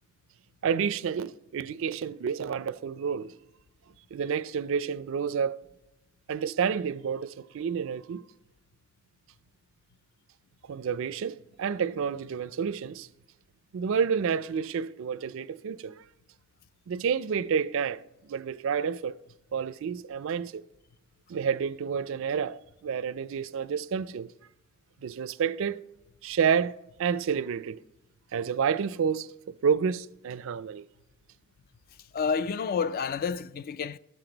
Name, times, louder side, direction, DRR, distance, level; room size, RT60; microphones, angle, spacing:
voice 1, 0.6-3.4 4.1-5.6 6.3-8.2 10.6-13.1 13.7-16.0 16.9-18.0 18.3-19.2 19.5-20.6 21.3-24.3 25.0-25.8 26.2-27.8 28.3-29.3 29.6-30.8, right 6 dB, 65° right, 0.4 m, -29 dB
voice 2, 32.1-34.0, left 6 dB, 45° left, 0.3 m, -29 dB
12.0 x 7.7 x 3.9 m
head